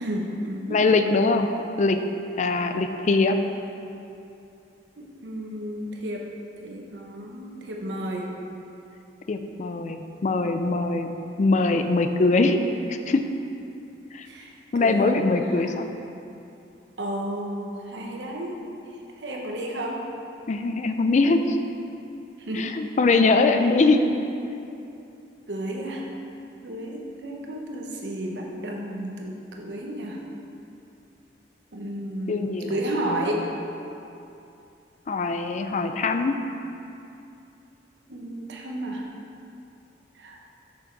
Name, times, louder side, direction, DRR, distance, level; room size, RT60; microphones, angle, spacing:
voice 1, 0.0-0.8 5.0-6.3 6.6-8.4 14.2-14.5 14.8-15.2 15.6-15.7 17.0-18.6 19.2-20.0 22.4-22.8 23.3-23.7 24.1-24.2 25.5-26.1 26.6-30.2 31.7-33.5 38.1-39.1 40.2-40.4, right 1 dB, 85° right, 0 dB, 1.0 m, -32 dB
voice 2, 0.7-1.5 1.8-2.0 2.4-3.4 9.3-11.1 11.4-12.6 12.9-13.2 14.1-14.3 14.7-15.9 20.5-21.6 22.6-24.0 32.3-32.7 35.1-36.3, left 3 dB, 45° left, 7 dB, 0.4 m, -22 dB
6.4 x 6.2 x 4.6 m, 2.7 s
head